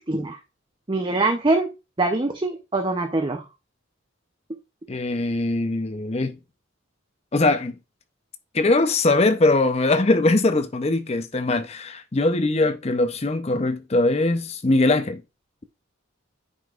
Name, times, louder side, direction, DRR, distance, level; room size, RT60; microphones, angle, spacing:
voice 1, 0.1-0.4 0.9-1.7 2.0-3.4, right 2 dB, 25° right, 0.6 m, -23 dB
voice 2, 4.9-6.4 7.3-7.8 8.5-15.2, left 2 dB, 30° left, 0.6 m, -21 dB
9.4 x 5.2 x 2.4 m
head